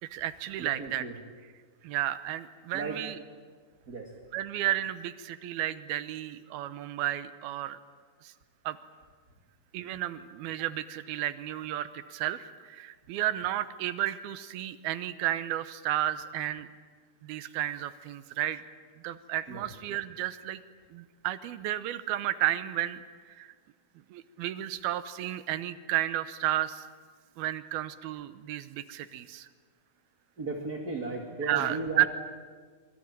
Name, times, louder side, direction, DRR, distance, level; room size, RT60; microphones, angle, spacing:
voice 1, 0.0-1.1 1.8-3.2 4.3-7.8 8.2-8.3 8.7-8.8 9.7-16.7 17.2-18.6 19.0-20.6 20.9-23.5 24.1-26.9 27.4-29.5 31.4-32.1, right 13 dB, 85° right, 13 dB, 2.8 m, -32 dB
voice 2, 0.6-1.2 2.7-3.0 3.9-4.1 19.5-19.6 30.4-32.1, right 3 dB, 30° right, 1 dB, 2.2 m, -35 dB
25.5 x 23.0 x 8.9 m, 1.5 s
omnidirectional pair, 4.4 m